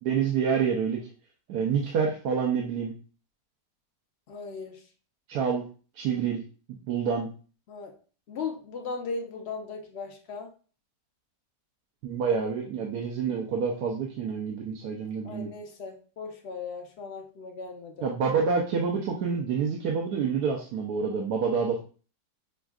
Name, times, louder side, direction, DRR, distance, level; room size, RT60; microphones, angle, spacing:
voice 1, 0.0-1.1 1.5-2.9 5.3-5.7 6.0-6.4 6.9-7.3 12.0-15.5 18.0-21.8, right 6 dB, 80° right, 0 dB, 1.2 m, -27 dB
voice 2, 4.3-4.8 7.7-8.0 8.3-10.5 15.2-18.1, left 4 dB, 55° left, 3 dB, 0.7 m, -37 dB
6.1 x 2.4 x 2.3 m, 0.38 s
omnidirectional pair, 1.7 m